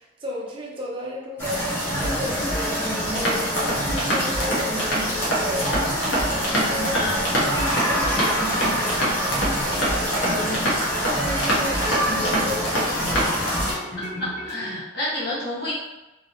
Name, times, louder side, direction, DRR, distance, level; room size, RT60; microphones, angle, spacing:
voice 1, 0.0-5.0 5.4-13.4, equal, 30° right, -3 dB, 0.6 m, -35 dB
sound 1, 1.4-13.7, equal, 15° left, 1.1 m, -26 dB
sound 2, 1.8-14.7, equal, 40° left, 1.3 m, -33 dB
sound 3, 3.1-13.5, equal, 90° left, 1.0 m, -26 dB
voice 2, 14.0-15.7, left 1 dB, 60° left, -7 dB, 1.2 m, -29 dB
3.1 x 2.7 x 2.7 m, 1.0 s
head